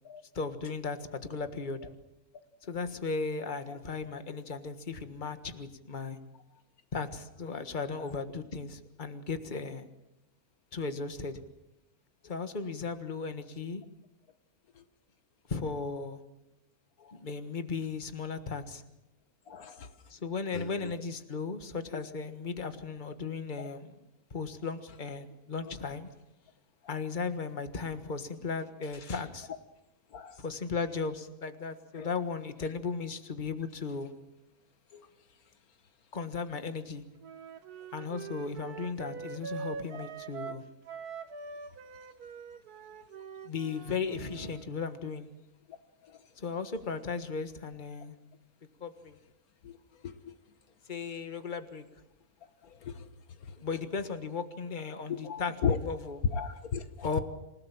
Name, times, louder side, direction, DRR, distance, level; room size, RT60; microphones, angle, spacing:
voice 1, 0.3-1.8 2.6-6.2 6.9-9.9 10.7-11.4 12.2-13.8 15.5-16.2 17.1-18.8 20.1-24.0 24.3-26.1 26.9-29.5 30.4-34.1 36.1-37.0 37.9-40.6 43.4-45.3 46.4-48.2 48.8-49.2 50.9-51.8 53.6-56.2 57.0-57.2, left 4 dB, 35° left, 1.6 m, -36 dB
voice 2, 19.5-19.9 20.5-20.9 30.1-30.4 32.0-32.1 34.9-35.0 40.0-40.1 49.6-49.8 50.0-50.3 52.8-53.0 55.2-55.8 56.3-57.2, left 6 dB, 75° left, 1.5 m, -35 dB
Wind instrument woodwind instrument, 37.2-44.6, right 6 dB, 85° right, 1.7 m, -43 dB
27.5 x 17.5 x 7.3 m
omnidirectional pair, 1.6 m